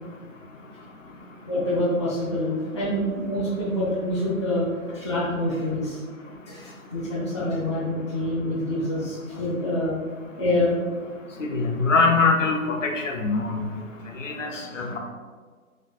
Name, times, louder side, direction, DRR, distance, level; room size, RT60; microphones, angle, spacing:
voice 1, 1.5-10.0 10.4-10.8 14.5-14.7, left 1 dB, 20° left, -9 dB, 0.4 m, -26 dB
voice 2, 11.5-12.6 12.8-13.7 14.2-14.5 14.7-15.0, left 4 dB, 60° left, 1 dB, 0.8 m, -22 dB
5.6 x 3.2 x 2.3 m, 1.5 s
figure-of-eight pair, 135°, 43 cm